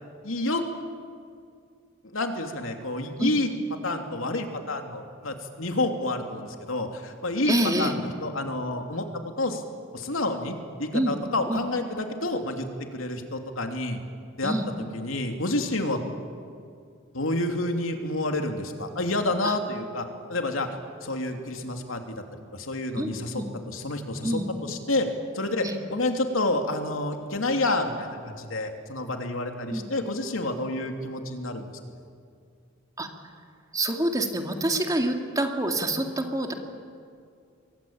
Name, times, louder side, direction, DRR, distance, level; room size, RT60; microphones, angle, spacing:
voice 1, 0.2-0.6 2.1-3.5 3.8-9.1 9.4-9.6 9.9-12.7 12.9-14.0 14.4-14.5 14.9-16.0 17.1-20.7 21.0-25.1 25.3-25.7 25.9-31.7, left 2 dB, 90° left, 4 dB, 2.9 m, -29 dB
voice 2, 7.5-7.9 10.9-11.2 11.5-11.6 14.4-14.7 19.4-19.5 22.9-23.5 24.2-24.5 25.6-25.8 29.7-29.8 33.0-33.1 33.7-36.5, right 1 dB, 20° right, 4 dB, 2.2 m, -27 dB
28.0 x 23.0 x 8.8 m, 2.3 s
head